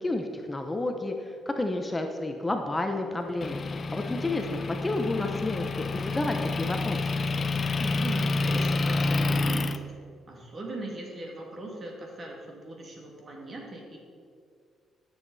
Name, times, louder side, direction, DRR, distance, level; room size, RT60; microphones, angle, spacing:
voice 1, 0.0-3.6 3.9-7.0, left 2 dB, 20° left, 4 dB, 0.8 m, -30 dB
Motor vehicle (road) / Engine, 3.4-9.8, left 3 dB, 40° left, 0.5 m, -28 dB
voice 2, 7.8-9.8 10.3-14.0, right 2 dB, 40° right, -1 dB, 2.4 m, -39 dB
13.0 x 7.4 x 4.1 m, 2.2 s
cardioid pair, 90°, 0 cm